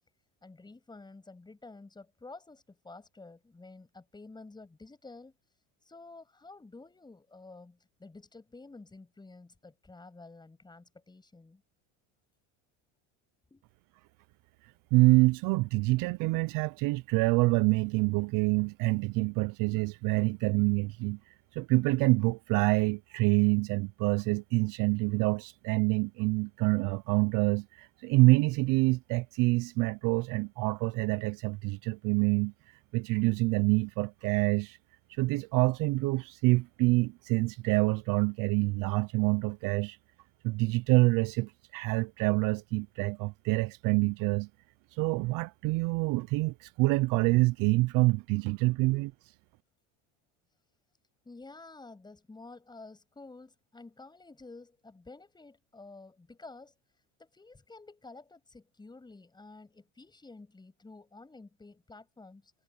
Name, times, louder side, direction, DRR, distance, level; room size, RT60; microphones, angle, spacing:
voice 1, 0.4-5.4 5.8-11.6 13.5-13.6 48.7-48.8 51.2-56.7 57.2-62.5, left 3 dB, 10° left, 7.9 m, -51 dB
voice 2, 14.9-32.5 32.9-34.8 35.1-40.0 40.4-44.5 44.9-49.1, right 23 dB, 55° right, 0.5 m, -26 dB
cardioid pair, 145°, 39 cm